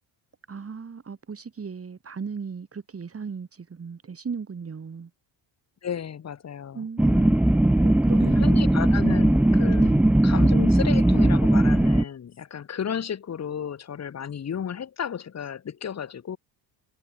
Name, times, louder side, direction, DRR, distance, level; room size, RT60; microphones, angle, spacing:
voice 1, 0.5-5.1 6.7-8.5 9.0-9.2 9.8-10.1, right 5 dB, 30° right, 6.6 m, -36 dB
voice 2, 5.8-6.9 8.3-9.9 10.2-16.4, left 8 dB, 35° left, 1.7 m, -33 dB
sound 1, 7.0-12.0, right 1 dB, 5° right, 0.4 m, -19 dB
cardioid pair, 115°, 47 cm